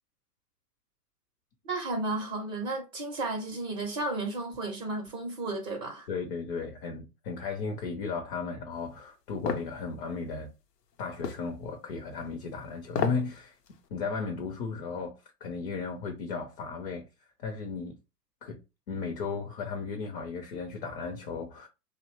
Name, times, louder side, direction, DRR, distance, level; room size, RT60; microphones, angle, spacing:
voice 1, 1.6-6.1, right 2 dB, 25° right, 0.5 m, -33 dB
voice 2, 6.1-10.5 11.0-13.6 13.9-15.1 15.4-17.1 17.4-18.0 18.4-18.6 18.9-21.7, left 4 dB, 35° left, 0.5 m, -35 dB
sound 1, 9.5-9.7 11.2-11.5 12.9-13.3 13.7-13.8, left 5 dB, 80° left, 0.7 m, -30 dB
2.6 x 2.0 x 3.0 m
hypercardioid pair, 120°, 48 cm